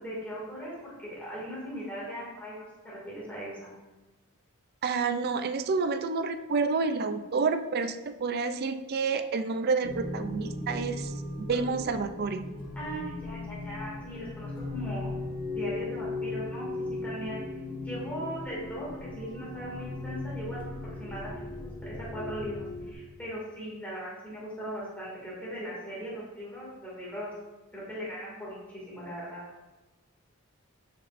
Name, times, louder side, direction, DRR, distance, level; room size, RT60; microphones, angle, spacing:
voice 1, 0.0-3.7 12.7-15.1 15.5-16.7 17.0-17.4 17.8-20.6 21.0-22.6 22.8-27.3 27.7-28.6 28.9-29.4, equal, 5° left, -7 dB, 2.3 m, -39 dB
voice 2, 4.8-11.1 11.4-12.4, right 4 dB, 45° right, 10 dB, 0.4 m, -29 dB
sound 1, 9.8-22.9, left 2 dB, 25° left, 1.3 m, -37 dB
10.5 x 5.2 x 2.6 m, 1.2 s
head